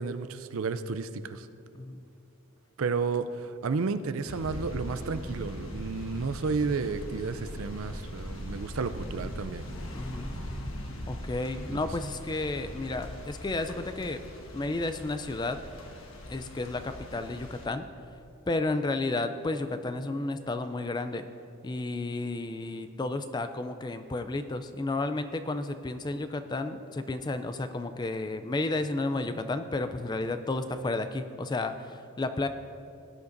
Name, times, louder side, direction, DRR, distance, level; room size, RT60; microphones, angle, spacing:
voice 1, 0.0-1.5 2.8-9.7 11.7-11.9, right 4 dB, 70° right, 12 dB, 0.4 m, -32 dB
voice 2, 1.7-2.0 9.9-10.3 11.1-14.2 14.5-15.6 16.3-17.9 18.5-21.2 21.6-32.5, left 2 dB, 20° left, 9 dB, 0.3 m, -32 dB
sound 1, 4.3-17.7, equal, 65° left, 1.3 m, -40 dB
17.5 x 9.7 x 2.6 m, 2.5 s
head